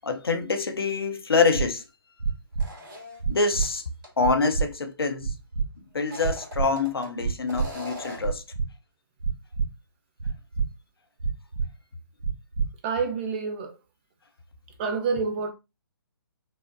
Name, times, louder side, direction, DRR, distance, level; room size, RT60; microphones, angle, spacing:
voice 1, 0.0-1.8 3.3-3.8 4.2-5.3 5.9-8.4, left 4 dB, 75° left, 0.7 m, -25 dB
sound 1, 1.5-1.6 2.2-2.6 3.2-3.7 4.2-4.6 5.2-5.6 6.2-6.6 7.2-7.7 8.2-8.7 9.2-9.7 10.2-10.7 11.2-11.7 12.2-12.7, right 5 dB, 70° right, 0.9 m, -26 dB
sound 2, 2.6-3.7 4.0-4.1 6.0-7.1 7.5-8.4, left 2 dB, 55° right, 2.0 m, -40 dB
voice 2, 12.8-13.8 14.8-15.5, right 5 dB, 25° right, 0.6 m, -28 dB
5.4 x 2.1 x 2.6 m
figure-of-eight pair, 135°, 13 cm